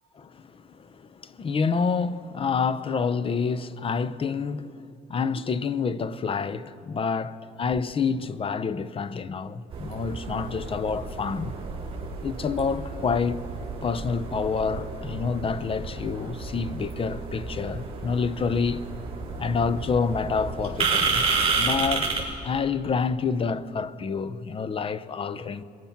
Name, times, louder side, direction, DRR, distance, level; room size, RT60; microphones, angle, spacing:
voice 1, 0.2-11.5 12.2-13.4 13.8-18.8 19.4-21.3 21.5-22.1 22.4-25.6, left 5 dB, 35° left, 0.8 m, -28 dB
sound 1, 9.7-22.3, right 4 dB, 35° right, 5.7 m, -31 dB
24.0 x 22.0 x 5.9 m
cardioid pair, 110°, 17 cm